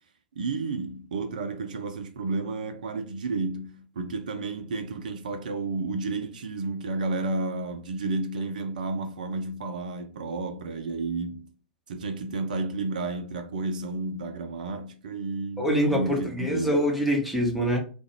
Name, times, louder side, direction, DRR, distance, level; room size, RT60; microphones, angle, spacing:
voice 1, 0.4-11.5 11.9-16.7, right 3 dB, 65° right, 0.3 m, -31 dB
voice 2, 15.6-17.8, equal, ahead, 0.8 m, -25 dB
2.3 x 2.1 x 2.9 m
figure-of-eight pair, 95°, 5 cm